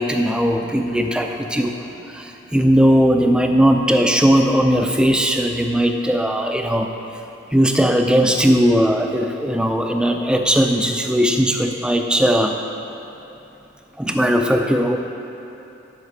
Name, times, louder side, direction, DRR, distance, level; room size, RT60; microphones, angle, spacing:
voice 1, 0.0-6.9 7.5-12.6 14.0-15.0, equal, 5° right, 4 dB, 0.4 m, -18 dB
11.0 x 5.1 x 6.8 m, 2.8 s
head